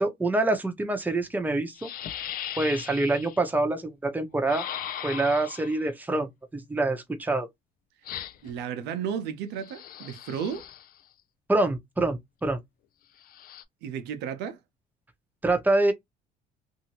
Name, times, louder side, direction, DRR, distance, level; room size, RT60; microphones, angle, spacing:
voice 1, 0.0-1.9 2.6-4.7 5.0-7.5 11.5-12.6 15.4-15.9, right 2 dB, 10° right, 0.8 m, -26 dB
sound 1, 1.1-1.2 1.7-3.4 4.5-5.9 8.0-8.6 9.6-11.0 13.2-13.6, left 10 dB, 60° left, 0.5 m, -38 dB
voice 2, 8.4-10.7 13.8-14.6, right 8 dB, 90° right, 0.7 m, -33 dB
2.7 x 2.6 x 2.9 m
cardioid pair, 110°, 17 cm